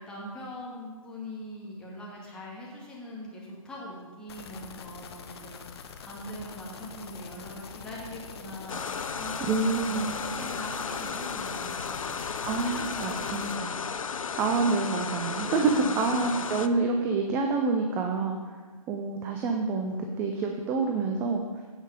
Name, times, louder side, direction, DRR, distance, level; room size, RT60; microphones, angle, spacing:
voice 1, 0.0-12.2 12.6-13.8 15.5-16.5, left 1 dB, 5° left, -6 dB, 2.3 m, -42 dB
sound 1, 4.3-13.6, left 6 dB, 45° left, 1.0 m, -44 dB
sound 2, 8.7-16.7, left 6 dB, 65° left, 0.7 m, -34 dB
voice 2, 9.5-10.2 12.4-13.8 14.4-18.4 18.9-21.4, right 4 dB, 10° right, 3 dB, 0.5 m, -27 dB
16.0 x 5.4 x 5.2 m, 1.4 s
figure-of-eight pair, 140°, 18 cm